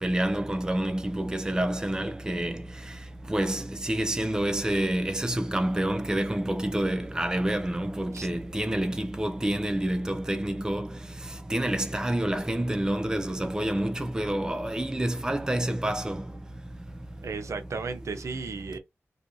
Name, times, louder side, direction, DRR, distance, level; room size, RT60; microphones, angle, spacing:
voice 1, 0.0-2.6 3.3-10.9 11.5-16.2, right 1 dB, 15° right, 0.4 m, -28 dB
voice 2, 17.2-18.8, right 4 dB, 80° right, 0.5 m, -34 dB
2.5 x 2.3 x 2.6 m
wide cardioid pair, 70°, 5 cm